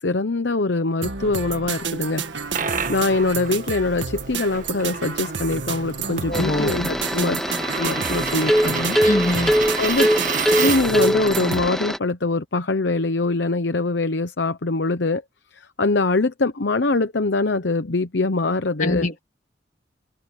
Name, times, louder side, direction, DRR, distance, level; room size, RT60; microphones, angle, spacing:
voice 1, 0.0-2.2 2.9-7.4 7.8-9.0 9.8-10.1 10.6-15.2 15.5-19.1, left 3 dB, 65° left, 0.9 m, -23 dB
sound 1, 1.0-11.7, right 5 dB, 75° right, 1.8 m, -31 dB
Coin (dropping), 2.2-11.1, right 6 dB, 45° right, 1.6 m, -31 dB
voice 2, 6.3-6.7 9.0-9.5 18.8-19.2, left 1 dB, 40° left, 2.2 m, -23 dB
sound 2, 6.3-12.0, equal, ahead, 1.6 m, -22 dB
head